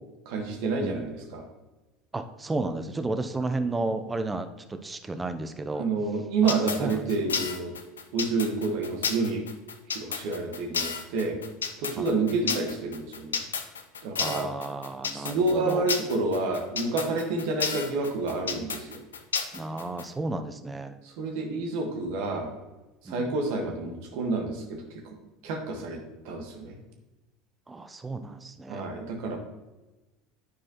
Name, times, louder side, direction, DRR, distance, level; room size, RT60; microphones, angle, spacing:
voice 1, 0.2-1.5 5.8-7.7 8.1-9.4 9.9-11.4 11.8-13.4 14.0-14.5 15.1-19.0 21.0-22.5 23.0-25.1 25.4-26.0 26.2-26.7 28.7-29.4, right 3 dB, 65° right, 2 dB, 1.4 m, -29 dB
voice 2, 2.1-5.9 6.4-6.5 6.8-7.0 12.0-12.1 14.2-15.9 19.5-20.9 23.1-23.3 27.7-28.9, right 2 dB, 15° right, 8 dB, 0.6 m, -32 dB
sound 1, 6.5-20.0, left 6 dB, 90° left, 0.5 m, -31 dB
9.7 x 4.7 x 2.9 m, 1.1 s
hypercardioid pair, 80°, 0 cm